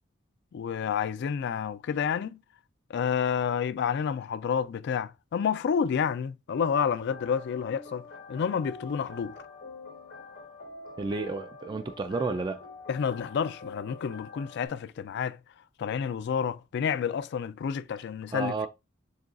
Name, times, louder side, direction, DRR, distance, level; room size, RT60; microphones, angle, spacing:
voice 1, 0.5-2.4 2.9-9.4 12.9-15.4 15.8-18.5, left 7 dB, 60° left, 0.3 m, -29 dB
sound 1, 6.5-14.7, left 3 dB, 85° left, 1.9 m, -46 dB
voice 2, 11.0-12.6 18.3-18.7, right 3 dB, 20° right, 0.3 m, -31 dB
6.4 x 2.3 x 2.4 m
head